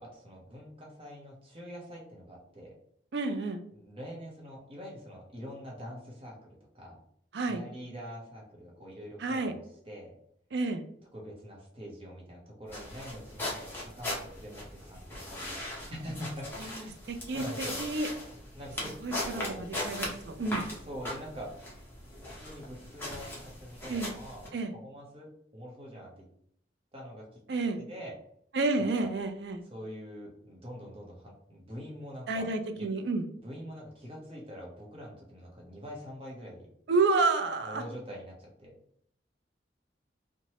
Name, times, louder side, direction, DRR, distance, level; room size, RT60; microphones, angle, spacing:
voice 1, 0.0-2.7 3.7-6.4 6.7-7.0 7.4-10.1 11.1-17.8 18.6-19.0 19.3-19.6 20.8-21.5 22.2-26.3 26.9-27.4 27.8-28.2 28.8-29.1 29.7-32.5 32.8-32.9 33.4-36.7 37.6-38.7, equal, 30° right, -2 dB, 0.8 m, -44 dB
voice 2, 3.1-3.6 7.3-7.6 9.2-9.5 10.5-10.8 17.1-18.1 19.0-20.6 23.9-24.1 24.5-24.7 27.5-27.8 28.5-29.6 32.3-33.2 36.9-37.8, right 3 dB, 65° right, 7 dB, 0.4 m, -30 dB
sound 1, 12.7-24.5, left 1 dB, 10° left, 0.8 m, -39 dB
2.9 x 2.2 x 2.9 m, 0.67 s
head